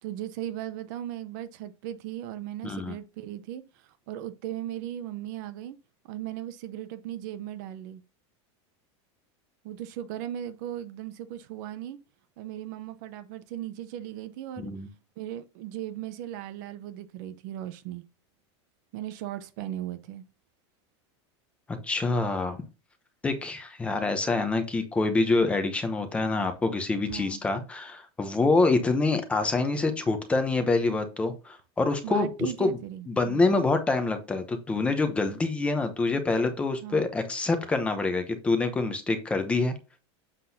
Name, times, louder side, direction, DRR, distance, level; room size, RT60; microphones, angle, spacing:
voice 1, 0.0-3.6 4.1-5.8 6.1-8.0 9.6-12.0 12.4-14.7 15.2-18.0 18.9-20.2 27.1-27.4 32.0-33.4 36.8-37.0, right 12 dB, 40° right, 0.6 m, -37 dB
voice 2, 2.6-2.9 14.6-14.9 21.7-22.6 23.2-32.3 32.6-32.8 33.1-39.7, left 3 dB, 10° left, 0.8 m, -26 dB
7.5 x 6.0 x 2.7 m
supercardioid pair, 180°, 15 cm